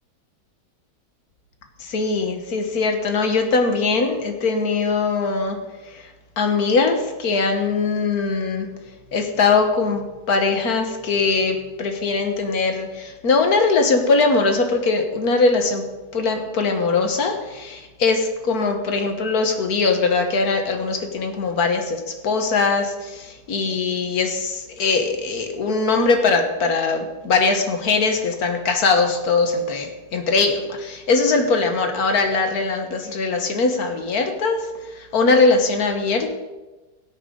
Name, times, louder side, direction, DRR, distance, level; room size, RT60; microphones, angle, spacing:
voice 1, 1.8-5.6 5.9-6.0 6.4-8.7 9.1-15.9 16.1-34.6 35.1-36.3, left 4 dB, 60° left, 5 dB, 1.9 m, -21 dB
17.0 x 9.1 x 3.9 m, 1.1 s
omnidirectional pair, 1.9 m